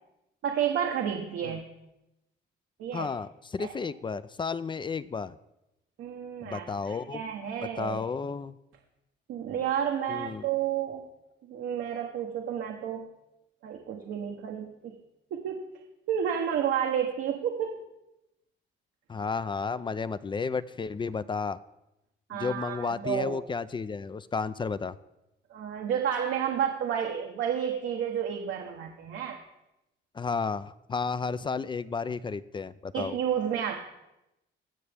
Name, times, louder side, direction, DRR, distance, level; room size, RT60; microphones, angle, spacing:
voice 1, 0.4-1.6 2.8-3.1 3.6-3.7 6.0-8.0 9.3-11.0 11.5-13.1 13.6-14.9 15.3-15.6 16.1-17.8 22.3-23.4 25.5-29.4 32.9-33.7, right 9 dB, 80° right, 1 dB, 1.0 m, -31 dB
voice 2, 2.9-5.4 6.4-7.2 7.8-8.6 10.1-10.5 19.1-21.6 22.3-25.0 30.1-33.2, left 5 dB, 25° left, 16 dB, 0.4 m, -32 dB
16.5 x 6.9 x 3.4 m, 0.93 s
cardioid pair, 90°, 20 cm